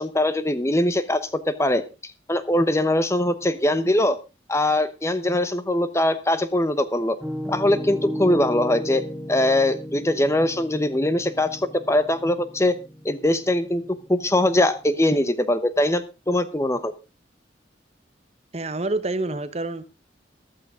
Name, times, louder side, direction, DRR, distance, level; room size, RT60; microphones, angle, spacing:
voice 1, 0.0-1.8 2.3-4.2 4.5-7.2 7.5-9.0 9.3-12.7 13.0-13.8 14.1-16.9, left 1 dB, 15° left, 0.9 m, -22 dB
Piano, 7.2-15.1, equal, ahead, 4.2 m, -35 dB
voice 2, 18.5-19.8, right 2 dB, 35° right, 1.0 m, -27 dB
14.5 x 12.5 x 3.7 m
head